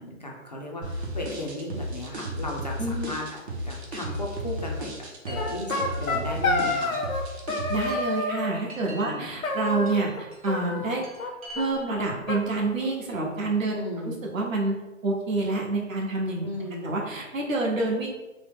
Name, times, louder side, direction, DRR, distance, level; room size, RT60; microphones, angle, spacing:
voice 1, 0.0-4.9 5.3-7.0 9.0-9.3 13.7-14.2 16.4-16.9, left 1 dB, 35° left, -2 dB, 0.4 m, -35 dB
sound 1, 0.8-7.9, equal, 50° right, 0.9 m, -34 dB
voice 2, 2.8-3.1 7.7-11.0 11.5-13.7 14.0-16.5 16.8-18.1, right 3 dB, 70° right, -1 dB, 1.0 m, -28 dB
Chime, 4.0-12.1, right 1 dB, 25° right, 0.5 m, -46 dB
sound 2, 5.3-7.2 7.5-8.5 9.4-10.2 10.5-11.3 11.6-11.7 11.9-12.0 12.3-13.3, left 2 dB, 85° left, 0.7 m, -29 dB
3.0 x 2.0 x 3.5 m, 1.0 s
hypercardioid pair, 155°, 41 cm